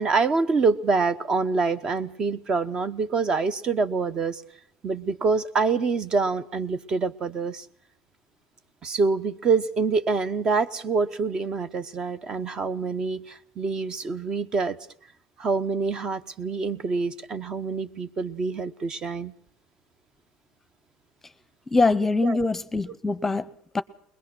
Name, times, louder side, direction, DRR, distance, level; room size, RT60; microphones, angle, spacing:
voice 1, 0.0-4.4 4.8-7.7 8.8-14.8 15.4-19.3 22.2-22.4, right 4 dB, 35° right, 1.0 m, -26 dB
voice 2, 21.7-23.8, left 3 dB, 15° left, 0.8 m, -23 dB
21.0 x 21.0 x 6.1 m
supercardioid pair, 95°, 2 cm